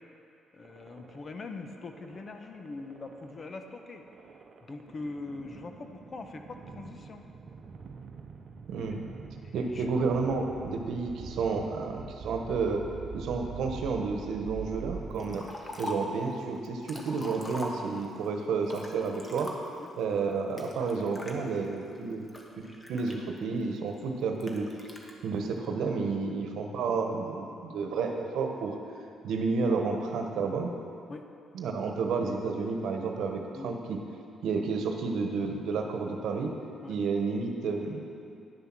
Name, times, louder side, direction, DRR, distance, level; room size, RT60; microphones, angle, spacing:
voice 1, 0.5-4.0 4.6-7.3 9.4-9.9 15.5-15.7 17.0-17.1 18.0-18.1 19.8-19.9 21.8-21.9 25.5-25.6 26.4-26.5 31.1-31.3 31.9-32.0 33.5-33.8 36.8-37.0, left 3 dB, 40° left, 6 dB, 0.9 m, -43 dB
sound 1, 0.6-15.7, right 5 dB, 55° right, 0.8 m, -45 dB
voice 2, 8.7-9.0 9.5-12.8 13.1-15.4 15.8-19.5 20.0-22.2 22.6-22.7 22.9-24.7 25.2-28.8 29.2-30.8 31.5-34.0 34.4-36.5 36.9-38.0, right 4 dB, 80° right, 3 dB, 1.1 m, -31 dB
Liquid, 15.2-16.2 16.6-18.2 18.6-19.9 20.6-21.3 21.9-23.6 24.4-25.1, left 2 dB, 25° left, 1.4 m, -42 dB
10.5 x 7.1 x 6.1 m, 2.5 s
cardioid pair, 90°, 0 cm